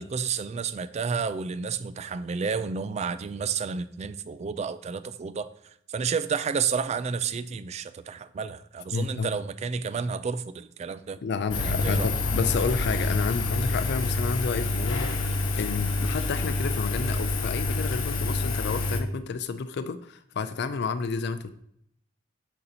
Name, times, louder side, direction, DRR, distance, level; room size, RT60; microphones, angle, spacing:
voice 1, 0.0-5.5 5.9-11.2 11.6-12.1, right 5 dB, 35° right, 0.3 m, -31 dB
voice 2, 8.9-9.3 11.2-21.5, left 5 dB, 60° left, 0.4 m, -30 dB
Engine, 11.5-19.0, left 3 dB, 80° left, 1.0 m, -27 dB
6.6 x 5.5 x 2.8 m
head